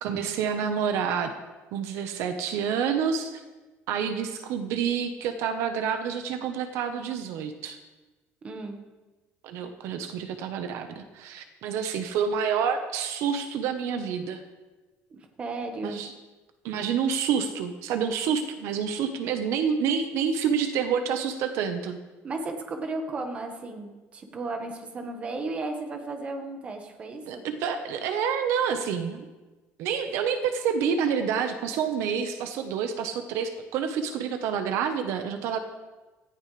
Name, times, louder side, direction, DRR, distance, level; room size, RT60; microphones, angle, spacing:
voice 1, 0.0-1.3 1.7-3.4 3.9-7.8 9.4-14.4 15.8-16.1 16.6-22.0 27.3-29.3 29.8-35.6, right 7 dB, 70° right, 7 dB, 1.2 m, -28 dB
voice 2, 8.4-8.8 15.1-16.0 22.2-27.4, right 2 dB, 25° right, 4 dB, 1.6 m, -34 dB
17.5 x 14.5 x 3.4 m, 1.2 s
cardioid pair, 170°, 5 cm